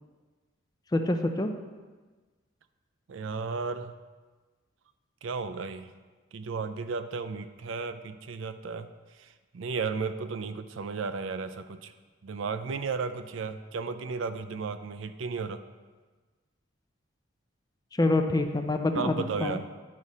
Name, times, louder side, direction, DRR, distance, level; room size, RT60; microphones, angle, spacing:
voice 1, 0.9-1.5 18.0-19.6, left 2 dB, 20° left, 6 dB, 0.4 m, -26 dB
voice 2, 3.1-3.9 5.2-5.9 6.3-8.9 9.2-9.3 9.5-11.9 12.2-15.6 18.9-19.7, right 4 dB, 70° right, 10 dB, 0.4 m, -34 dB
9.8 x 5.1 x 4.2 m, 1.3 s
head